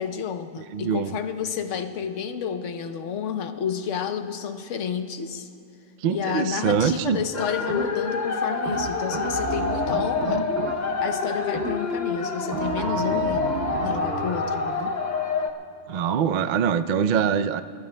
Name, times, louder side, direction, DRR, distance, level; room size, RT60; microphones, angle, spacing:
voice 1, 0.0-5.5 6.1-10.4 11.0-13.5 13.8-14.9, left 7 dB, 80° left, 8 dB, 1.1 m, -30 dB
voice 2, 0.7-1.1 6.0-7.2 15.9-17.6, right 7 dB, 60° right, 11 dB, 0.4 m, -23 dB
sound 1, 6.7-7.2 7.7-8.2 8.7-11.1 11.5-12.1 12.5-14.5, right 4 dB, 85° right, 1.2 m, -32 dB
sound 2, 7.3-15.5, left 4 dB, 40° left, 0.8 m, -27 dB
29.5 x 16.5 x 2.2 m, 2.7 s
omnidirectional pair, 1.2 m